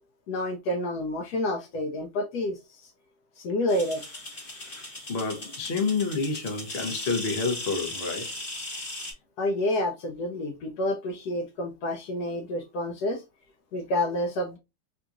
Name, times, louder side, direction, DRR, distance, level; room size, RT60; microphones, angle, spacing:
voice 1, 0.3-2.9 3.4-4.0 9.4-13.2 13.7-14.6, left 1 dB, 70° left, 1.0 m, -29 dB
sound 1, 3.7-9.1, left 2 dB, 30° left, 1.3 m, -37 dB
voice 2, 5.1-8.3, left 4 dB, 50° left, 0.7 m, -29 dB
3.5 x 2.8 x 2.4 m
omnidirectional pair, 2.0 m